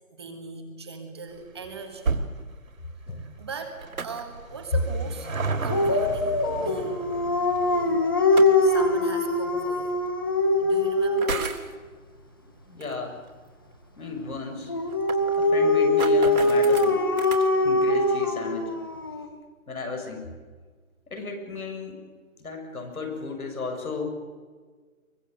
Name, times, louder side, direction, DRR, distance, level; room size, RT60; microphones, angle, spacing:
voice 1, 0.1-2.1 3.2-5.3 5.6-7.0 7.7-8.0 8.6-10.0 10.6-11.4, right 5 dB, 20° right, 5 dB, 1.6 m, -39 dB
sound 1, 1.3-14.0 14.3-14.4 15.3-15.4 15.6-15.7 16.0-16.1, right 4 dB, 70° right, 3.2 m, -36 dB
sound 2, 3.6-4.4 6.0-6.1 8.1-8.7 9.9-10.0 11.0-11.7 12.8-12.9 13.3-13.4 13.7-13.8 14.0-14.1 14.6-17.5, right 4 dB, 85° right, 3.4 m, -35 dB
Dog, 5.7-11.5 14.7-19.3, left 2 dB, 15° left, 1.0 m, -22 dB
voice 2, 12.7-13.2 14.0-14.7 15.3-17.1 17.6-18.7 19.7-20.2 21.1-22.0 22.4-24.1, left 4 dB, 80° left, 5 dB, 7.6 m, -34 dB
23.5 x 22.5 x 8.1 m, 1.5 s
hypercardioid pair, 175°, 43 cm